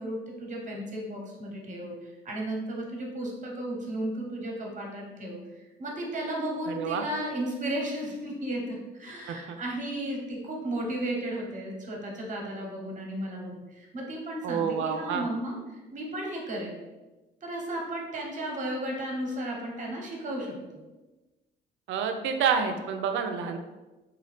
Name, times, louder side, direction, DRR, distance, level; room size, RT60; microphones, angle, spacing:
voice 1, 0.0-16.8 17.4-20.8, right 1 dB, 40° right, -1 dB, 0.8 m, -34 dB
voice 2, 6.7-7.0 9.3-9.6 14.4-15.3 21.9-23.6, right 6 dB, 75° right, 6 dB, 0.4 m, -28 dB
2.8 x 2.3 x 3.2 m, 1.1 s
cardioid pair, 90°, 20 cm